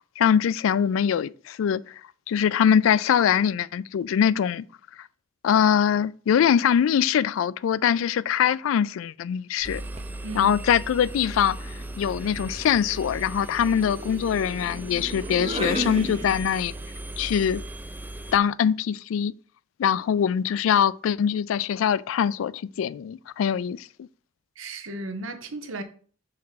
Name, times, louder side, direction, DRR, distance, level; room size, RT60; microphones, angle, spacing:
voice 1, 0.2-2.0 2.3-4.6 5.0-5.1 5.4-9.8 10.3-16.7 17.2-17.6 18.3-19.3 19.8-24.1, left 8 dB, 80° left, 0.3 m, -23 dB
Engine, 9.6-18.4, right 1 dB, 10° right, 0.3 m, -37 dB
sound 1, 9.6-10.2 11.5-16.8, right 1 dB, 30° right, 0.7 m, -36 dB
voice 2, 10.2-10.5 24.6-25.8, right 1 dB, 80° right, 0.9 m, -34 dB
6.5 x 4.2 x 4.1 m
head